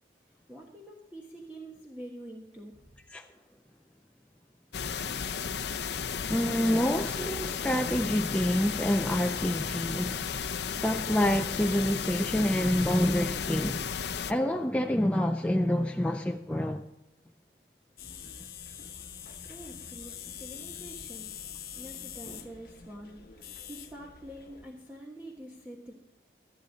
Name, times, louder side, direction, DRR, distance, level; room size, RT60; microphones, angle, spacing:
voice 1, 0.5-2.9 19.5-21.3 21.8-25.9, right 1 dB, 10° right, 1.2 m, -46 dB
sound 1, 4.7-14.3, left 6 dB, 75° left, 0.6 m, -34 dB
voice 2, 6.3-10.3 10.6-13.8 14.3-16.8, left 1 dB, 5° left, 0.4 m, -27 dB
sound 2, 18.0-24.6, left 8 dB, 55° left, 1.1 m, -44 dB
13.0 x 11.5 x 4.0 m
head